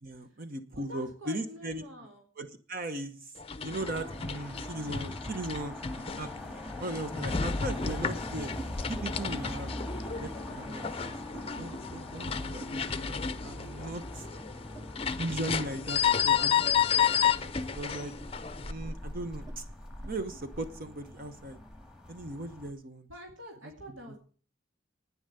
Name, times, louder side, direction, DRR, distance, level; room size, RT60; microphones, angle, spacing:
voice 1, 0.0-1.8 2.4-6.3 6.8-8.5 8.9-11.1 11.6-14.3 15.2-16.7 17.1-18.1 18.7-19.6 20.0-21.6 22.1-23.1, right 1 dB, 45° right, 9 dB, 0.9 m, -38 dB
voice 2, 0.7-2.2 23.1-24.2, equal, 80° right, 2 dB, 2.4 m, -47 dB
sound 1, 3.4-18.7, left 7 dB, 30° left, 0.6 m, -32 dB
sound 2, 3.8-22.7, left 1 dB, 5° right, 1.7 m, -43 dB
sound 3, 8.5-8.7 9.1-9.4 9.7-11.9 12.6-15.5 15.8-20.8, right 4 dB, 20° right, 1.1 m, -54 dB
11.0 x 9.5 x 6.7 m, 0.40 s
head